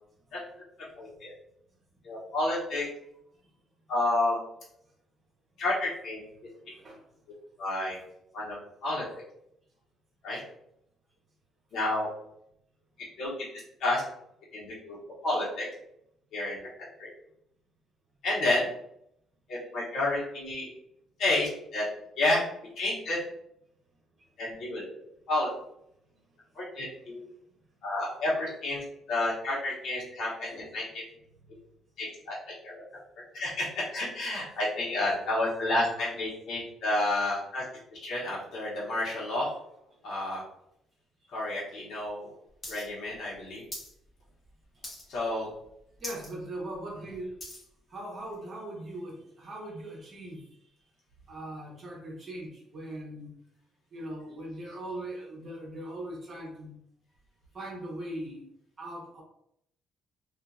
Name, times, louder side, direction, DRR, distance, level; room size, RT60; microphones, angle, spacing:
voice 1, 1.0-1.3 2.0-2.9 3.9-4.4 5.6-6.2 7.6-8.0 8.3-8.5 8.8-9.0 10.2-10.4 11.7-12.1 13.2-13.5 13.8-14.0 14.5-15.0 15.2-15.7 16.3-16.7 17.0-17.1 18.2-18.7 19.5-20.7 21.2-21.8 22.2-22.4 22.7-23.2 24.4-24.8 25.3-25.5 26.5-27.2 27.8-31.0 32.0-32.3 32.6-32.8 33.3-37.6 37.9-39.6 40.0-40.4 41.3-42.3 42.7-43.6 45.1-45.5, left 2 dB, 60° left, -7 dB, 1.0 m, -30 dB
sound 1, 42.6-42.8 43.1-43.9 44.3-44.5 44.8-45.3 45.6-45.7 46.0-46.3 46.7-47.7 48.3-48.4, left 1 dB, 30° left, 1.0 m, -41 dB
voice 2, 46.0-47.4 47.9-50.4 51.3-53.3 53.9-56.7 57.5-58.5 58.8-59.2, right 1 dB, 35° right, -3 dB, 0.9 m, -40 dB
2.7 x 2.5 x 2.3 m, 0.74 s
cardioid pair, 145°, 0 cm